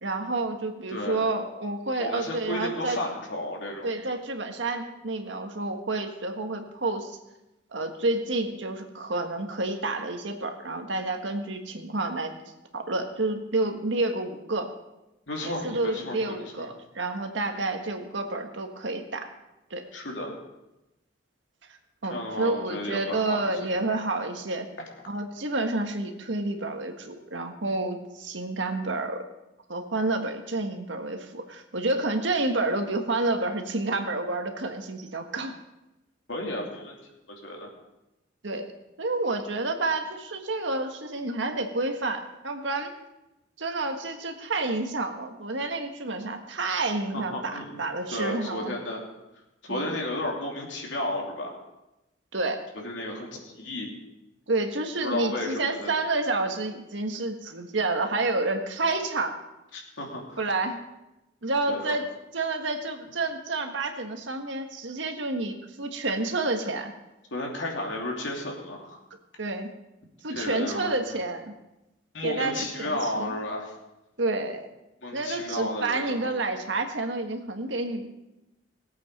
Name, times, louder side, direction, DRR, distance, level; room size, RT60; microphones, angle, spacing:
voice 1, 0.0-3.0 3.8-7.2 7.7-12.3 12.7-14.7 15.4-19.3 19.7-19.8 22.0-24.7 25.1-29.2 29.7-35.6 38.4-38.7 39.0-42.9 43.6-48.8 49.7-49.9 52.3-52.6 54.5-59.4 60.4-60.8 61.4-62.0 62.3-66.9 69.4-69.7 70.2-71.4 72.2-73.3 74.2-74.7 75.1-78.1, right 2 dB, 80° right, 4 dB, 1.6 m, -29 dB
voice 2, 0.9-1.3 2.0-3.9 15.3-16.7 19.9-20.3 22.1-23.4 36.3-36.9 37.4-37.7 47.1-47.8 48.1-49.0 49.6-51.5 52.8-53.9 55.0-55.9 59.7-60.4 61.7-61.9 67.3-69.0 70.3-71.2 72.1-73.7 75.0-76.3, left 1 dB, 80° left, 0 dB, 3.0 m, -33 dB
19.0 x 8.3 x 5.4 m, 0.95 s
head